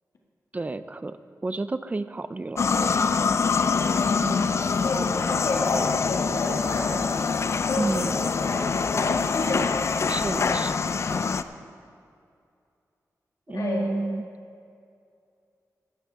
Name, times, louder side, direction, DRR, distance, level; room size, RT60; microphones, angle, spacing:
voice 1, 0.5-1.2 1.4-2.9 7.8-8.1 10.1-10.8 11.1-11.2 13.5-14.3, right 2 dB, 25° right, 13 dB, 0.4 m, -30 dB
sound 1, 2.6-11.4, left 5 dB, 50° left, 0.4 m, -25 dB
voice 2, 4.0-4.5 4.8-7.2 7.7-10.1 10.5-10.6 13.5-13.9, left 2 dB, 75° left, -1 dB, 1.9 m, -31 dB
15.5 x 11.5 x 3.6 m, 2.4 s
wide cardioid pair, 120°, 6 cm